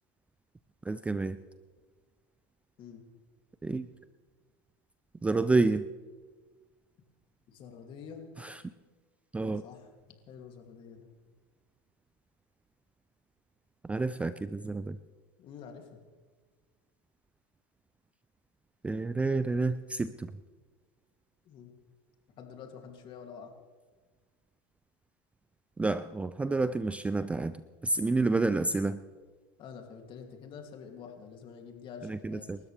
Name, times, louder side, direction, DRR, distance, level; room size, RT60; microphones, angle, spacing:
voice 1, 0.9-1.4 3.6-3.9 5.2-5.9 8.4-8.6 9.3-9.6 13.8-15.0 18.8-20.3 25.8-27.6 27.8-29.0 32.0-32.6, right 3 dB, 10° right, 14 dB, 0.4 m, -29 dB
voice 2, 7.5-8.3 9.6-9.9 10.3-11.1 15.4-15.9 21.4-21.7 22.4-23.5 29.6-32.5, left 6 dB, 45° left, 3 dB, 2.8 m, -47 dB
29.0 x 13.5 x 3.4 m, 1.4 s
supercardioid pair, 115°, 12 cm